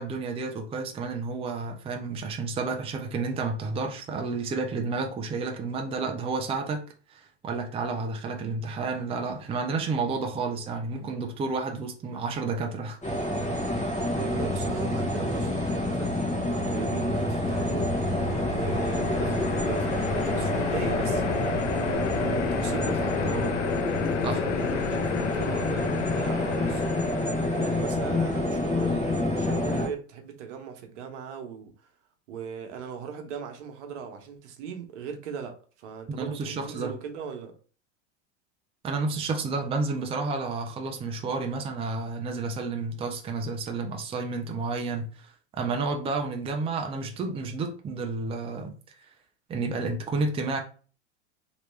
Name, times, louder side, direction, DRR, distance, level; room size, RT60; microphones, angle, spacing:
voice 1, 0.0-6.8 7.1-13.0 13.8-14.1 24.2-24.4 36.1-36.9 38.8-49.0 49.5-50.6, right 3 dB, 15° right, 0.5 m, -31 dB
sound 1, 13.0-29.9, left 1 dB, 20° left, 1.4 m, -28 dB
voice 2, 14.1-18.1 18.5-23.6 23.9-26.8 27.6-31.9 32.3-37.5, right 7 dB, 75° right, 1.1 m, -38 dB
sound 2, 17.2-28.5, left 7 dB, 85° left, 0.7 m, -32 dB
3.1 x 3.0 x 3.2 m
supercardioid pair, 125°, 36 cm